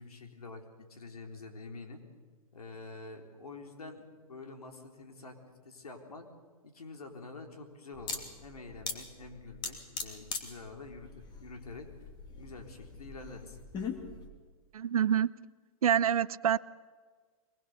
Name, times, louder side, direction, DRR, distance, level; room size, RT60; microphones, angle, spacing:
voice 1, 0.0-2.0 2.5-5.4 5.6-6.2 6.6-11.9 12.3-13.6, left 3 dB, 80° left, 3.9 m, -47 dB
sound 1, 7.9-14.3, left 5 dB, 25° left, 2.7 m, -41 dB
voice 2, 14.7-15.3 15.8-16.6, right 9 dB, 70° right, 0.7 m, -26 dB
23.0 x 21.5 x 6.8 m
hypercardioid pair, 120°, 19 cm